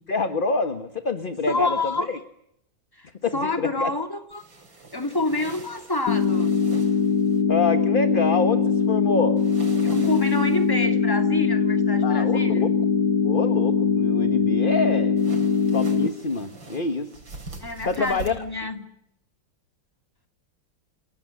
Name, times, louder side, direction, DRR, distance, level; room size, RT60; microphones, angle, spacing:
voice 1, 0.1-2.2 3.2-3.9 7.5-9.4 12.0-12.7 13.2-15.2 15.7-17.1 17.8-18.3, left 4 dB, 30° left, 9 dB, 1.4 m, -26 dB
voice 2, 1.5-2.1 2.9-4.4 4.9-6.6 9.8-12.7 17.6-18.8, left 2 dB, 10° left, 5 dB, 2.8 m, -28 dB
sound 1, 4.3-7.4 9.4-10.8 15.2-18.3, right 3 dB, 75° right, 5.0 m, -43 dB
sound 2, 6.1-16.1, left 6 dB, 90° left, 2.2 m, -21 dB
29.0 x 17.5 x 9.8 m, 0.77 s
omnidirectional pair, 2.1 m